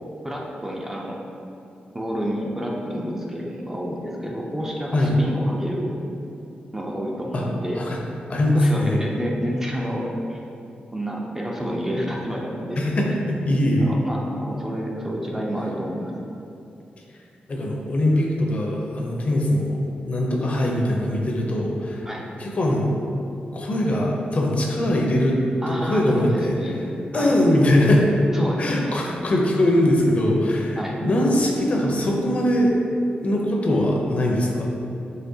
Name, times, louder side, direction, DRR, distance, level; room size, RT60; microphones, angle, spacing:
voice 1, 0.2-1.2 1.9-5.9 6.7-7.9 8.6-10.4 10.9-13.0 13.8-16.2 22.1-22.2 25.6-26.8 27.1-27.3 28.3-28.9 30.8-31.0, equal, 15° right, -2 dB, 0.4 m, -29 dB
voice 2, 8.3-9.0 12.8-13.9 17.5-19.8 20.0-22.1 22.4-22.9 23.5-25.4 25.7-26.8 27.1-28.1 28.6-32.7 33.2-34.7, left 1 dB, 45° left, -1 dB, 0.6 m, -21 dB
5.7 x 3.3 x 2.7 m, 2.7 s
wide cardioid pair, 135°, 3 cm